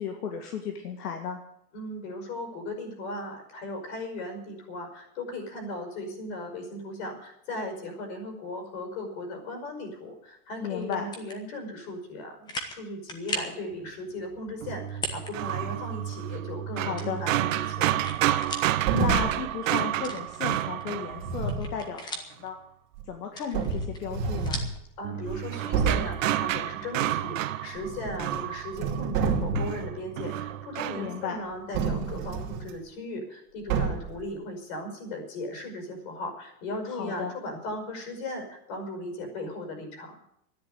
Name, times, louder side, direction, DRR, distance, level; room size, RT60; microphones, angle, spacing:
voice 1, 0.0-1.4 10.6-11.0 16.7-17.2 18.7-22.6 23.1-24.6 31.0-31.4 36.9-37.3, left 7 dB, 75° left, 4 dB, 2.1 m, -34 dB
voice 2, 1.7-18.0 25.0-40.2, left 1 dB, 40° left, 4 dB, 5.4 m, -37 dB
sound 1, 10.8-11.4 11.9-12.0 12.5-12.8 13.1-13.6 14.9-15.3 15.7-15.8 17.0-18.7 19.1-19.2 20.0-20.8 21.2-22.5 23.2-24.8, left 1 dB, 10° left, 1.1 m, -37 dB
sound 2, 14.6-21.8 25.0-29.2 29.5-31.3, right 13 dB, 55° right, 0.7 m, -30 dB
sound 3, 18.8-19.5 21.1-21.7 23.0-23.1 23.5-24.7 25.3-25.4 25.7-26.2 27.8-28.4 28.7-29.8 31.7-32.7 33.7-34.2, right 5 dB, 35° right, 2.7 m, -28 dB
13.0 x 10.5 x 8.0 m, 0.75 s
supercardioid pair, 165°, 47 cm